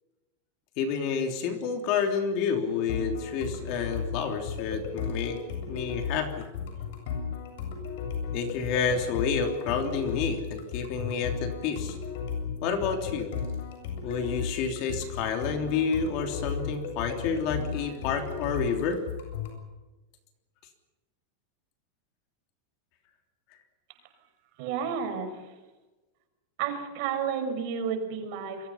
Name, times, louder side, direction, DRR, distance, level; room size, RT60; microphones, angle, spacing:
voice 1, 0.8-5.4 5.7-6.4 8.3-12.0 12.6-13.3 14.0-19.0, left 6 dB, 40° left, 5 dB, 3.2 m, -29 dB
sound 1, 2.9-19.6, left 6 dB, 60° left, 7.9 m, -35 dB
voice 2, 24.6-25.4 26.6-28.7, right 7 dB, 45° right, 5 dB, 6.1 m, -31 dB
28.0 x 23.5 x 5.8 m, 1.1 s
supercardioid pair, 170°, 0 cm